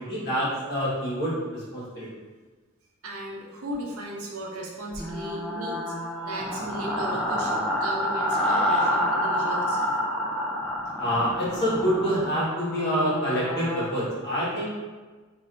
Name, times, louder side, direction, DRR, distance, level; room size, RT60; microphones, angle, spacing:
voice 1, 0.0-2.1 11.0-14.7, equal, 50° left, -8 dB, 1.2 m, -26 dB
voice 2, 3.0-5.9 6.2-9.8, right 1 dB, 80° right, -2 dB, 0.6 m, -35 dB
sound 1, 4.9-13.8, equal, 5° left, 0.3 m, -28 dB
3.2 x 2.6 x 2.5 m, 1.4 s
head